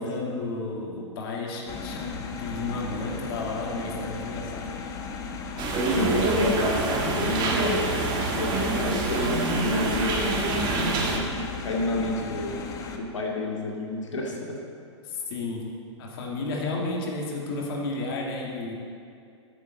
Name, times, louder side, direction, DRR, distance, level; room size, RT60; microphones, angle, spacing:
voice 1, 0.0-4.7 15.0-15.6 16.0-18.7, left 2 dB, 50° left, -1 dB, 2.2 m, -32 dB
sound 1, 1.7-13.0, left 5 dB, 20° left, 0.9 m, -36 dB
sound 2, 5.6-11.2, right 3 dB, 30° right, 1.6 m, -26 dB
voice 2, 5.9-7.9 8.4-10.2 10.7-12.6 12.9-14.6, left 2 dB, 90° left, -2 dB, 2.4 m, -29 dB
13.0 x 8.3 x 4.1 m, 2.4 s
hypercardioid pair, 130°, 15 cm